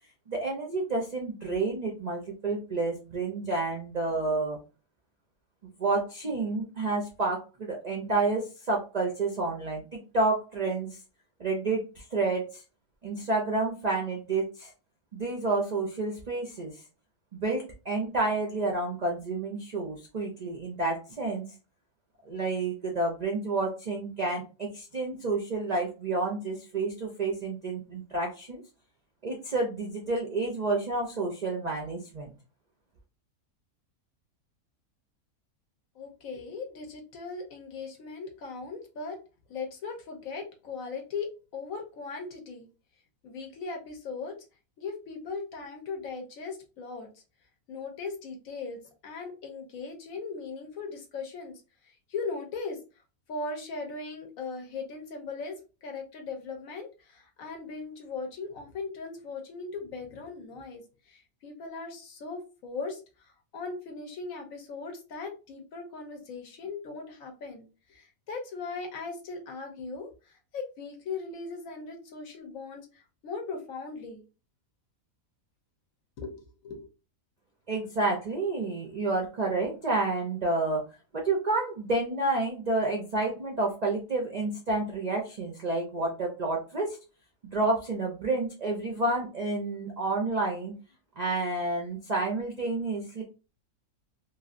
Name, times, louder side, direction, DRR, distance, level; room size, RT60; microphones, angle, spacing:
voice 1, 0.3-4.6 5.8-11.0 11.4-12.6 13.0-14.7 15.1-16.8 17.3-21.5 22.3-28.6 29.2-32.3 77.7-80.8 81.2-87.0 87.5-90.7 91.2-93.2, right 3 dB, 60° right, 0 dB, 0.4 m, -29 dB
voice 2, 35.9-39.2 39.5-42.7 43.2-44.4 44.8-47.1 47.7-51.6 51.9-52.8 53.3-55.6 55.8-74.2 76.2-76.9, left 4 dB, 65° left, 2 dB, 1.1 m, -39 dB
3.1 x 2.6 x 2.4 m, 0.32 s
omnidirectional pair, 1.6 m